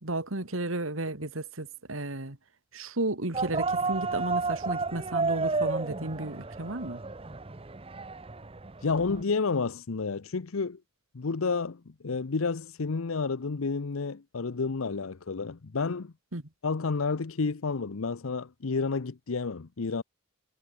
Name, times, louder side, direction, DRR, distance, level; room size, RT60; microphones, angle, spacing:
voice 1, 0.0-2.4 2.7-7.0 16.3-16.4, right 2 dB, 80° right, 2.6 m, -33 dB
sound 1, 3.3-9.2, right 3 dB, 25° right, 0.8 m, -32 dB
voice 2, 8.8-10.8 11.1-16.1 16.6-20.0, left 4 dB, 85° left, 0.7 m, -30 dB
head